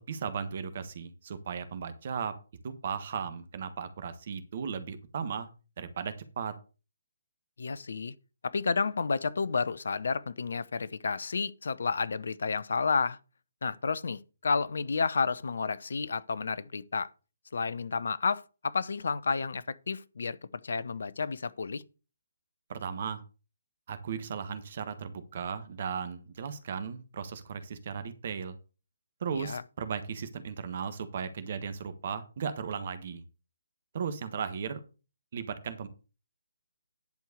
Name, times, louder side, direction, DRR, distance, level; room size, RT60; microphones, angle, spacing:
voice 1, 0.0-2.4 2.6-5.5 5.8-6.6 22.7-23.2 23.9-28.6 29.2-33.2 33.9-34.8 35.3-35.9, right 6 dB, 45° right, 1.4 m, -36 dB
voice 2, 7.6-8.1 8.4-13.2 13.6-17.1 17.5-20.4 20.6-21.8 29.4-29.6, left 4 dB, 60° left, 0.7 m, -31 dB
10.5 x 4.6 x 6.6 m
figure-of-eight pair, 140°, 0 cm